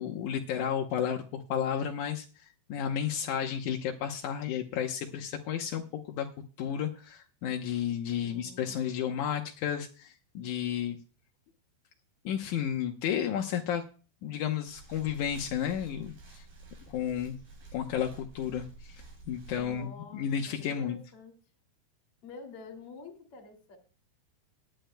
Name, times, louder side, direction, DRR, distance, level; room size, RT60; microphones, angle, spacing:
voice 1, 0.0-6.3 6.6-11.0 12.3-13.8 14.2-16.5 16.9-17.4 17.7-21.0, left 9 dB, 75° left, 2 dB, 1.8 m, -32 dB
voice 2, 8.2-8.9 19.6-20.3 20.6-21.4 22.2-23.8, left 4 dB, 40° left, 6 dB, 2.8 m, -48 dB
sound 1, 14.7-19.8, right 3 dB, 60° right, 6.4 m, -50 dB
19.5 x 10.5 x 2.2 m, 0.37 s
omnidirectional pair, 4.8 m